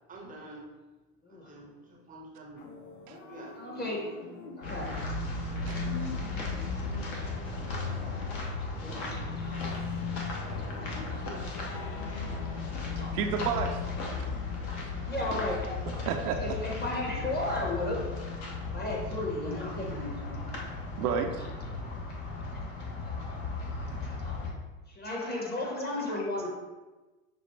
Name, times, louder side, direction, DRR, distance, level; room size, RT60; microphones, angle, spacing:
voice 1, 0.1-0.6 1.3-2.7 3.3-4.4 8.8-9.2, right 1 dB, 20° right, -1 dB, 0.6 m, -49 dB
sound 1, 2.6-18.5, left 3 dB, 80° left, 0.8 m, -51 dB
voice 2, 3.6-4.0 4.6-5.1 5.6-6.6 7.8-8.5 8.8-9.8 10.6-11.8 12.9-13.1 14.2-14.3 14.8-15.6 16.4-18.3 18.7-20.6 23.0-23.2 24.1-24.4 24.9-26.5, left 2 dB, 20° left, -2 dB, 1.0 m, -36 dB
sound 2, 4.6-24.5, left 3 dB, 55° left, 1.0 m, -35 dB
voice 3, 12.3-12.8 13.1-13.9 16.0-16.4 21.0-21.4 23.9-24.0, right 7 dB, 70° right, 5 dB, 0.6 m, -31 dB
6.0 x 2.0 x 3.0 m, 1.2 s
hypercardioid pair, 110°, 46 cm